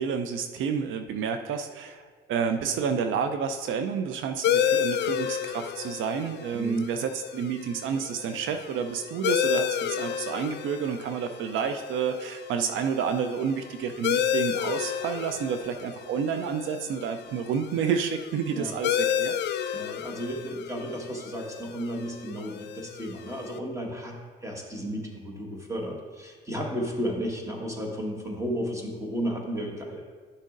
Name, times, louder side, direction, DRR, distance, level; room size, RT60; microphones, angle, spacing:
voice 1, 0.0-19.3, right 6 dB, 80° right, 8 dB, 0.5 m, -30 dB
sound 1, 4.4-23.6, left 10 dB, 60° left, 0.5 m, -31 dB
voice 2, 6.5-6.9 18.5-18.7 19.7-30.0, equal, 15° right, 0 dB, 1.5 m, -33 dB
11.5 x 6.4 x 2.5 m, 1.5 s
cardioid pair, 90°, 20 cm